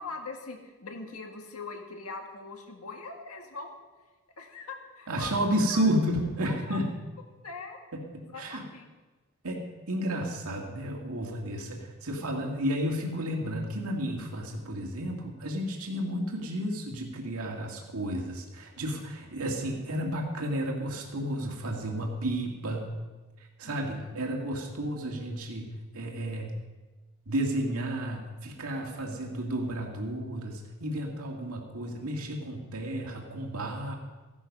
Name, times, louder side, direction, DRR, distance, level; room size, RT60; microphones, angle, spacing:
voice 1, 0.0-3.7 4.4-5.9 6.4-6.8 7.4-7.8 8.2-8.9 23.6-24.2, left 3 dB, 90° left, 3 dB, 1.8 m, -41 dB
voice 2, 5.1-6.9 8.4-8.6 9.4-22.9 23.6-26.5 27.3-33.9, equal, 85° right, 1 dB, 2.1 m, -32 dB
15.0 x 12.0 x 5.4 m, 1.2 s
head